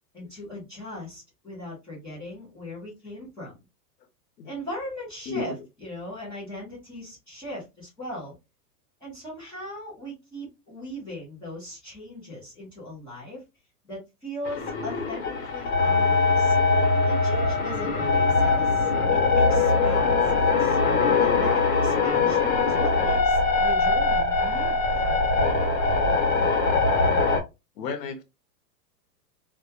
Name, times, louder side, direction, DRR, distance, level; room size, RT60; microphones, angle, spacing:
voice 1, 0.1-3.6 4.4-8.3 9.0-13.4 13.8-16.6 17.0-20.8 21.2-25.1, left 1 dB, 5° left, 0.4 m, -39 dB
voice 2, 5.3-5.6 27.8-28.2, left 4 dB, 90° left, 0.8 m, -32 dB
sound 1, 14.4-27.4, left 3 dB, 60° left, 1.0 m, -22 dB
2.2 x 2.1 x 2.7 m
supercardioid pair, 145°, 48 cm